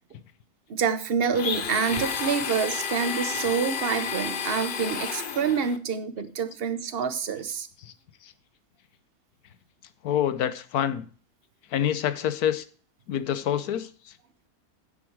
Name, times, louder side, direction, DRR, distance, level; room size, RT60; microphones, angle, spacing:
voice 1, 0.7-7.7, right 6 dB, 45° right, 11 dB, 1.1 m, -27 dB
Domestic sounds home sounds, 1.3-5.8, left 6 dB, 45° left, 0.7 m, -31 dB
voice 2, 10.0-11.1 11.7-12.6 13.1-14.1, left 10 dB, 85° left, 14 dB, 1.3 m, -27 dB
9.7 x 7.9 x 4.6 m, 0.40 s
omnidirectional pair, 1.6 m